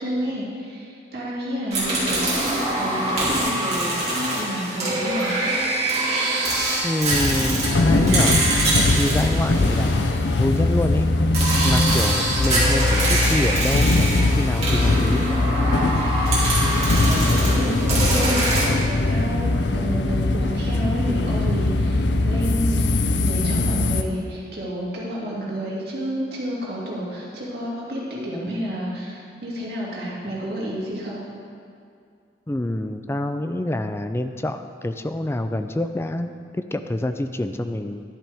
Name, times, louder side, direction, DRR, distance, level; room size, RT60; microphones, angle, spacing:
voice 1, 0.0-2.5 2.8-5.3 16.9-31.2, equal, 60° right, -6 dB, 2.6 m, -30 dB
sound 1, 1.7-10.6 11.3-18.6, right 2 dB, 35° right, 2.7 m, -24 dB
voice 2, 6.8-8.5 9.0-10.0 10.4-11.0 11.6-14.1 14.4-15.3 32.5-38.0, left 1 dB, 15° left, 8 dB, 0.4 m, -26 dB
sound 2, 7.1-24.0, left 2 dB, 85° left, 0.6 m, -21 dB
11.5 x 10.5 x 3.5 m, 2.3 s
head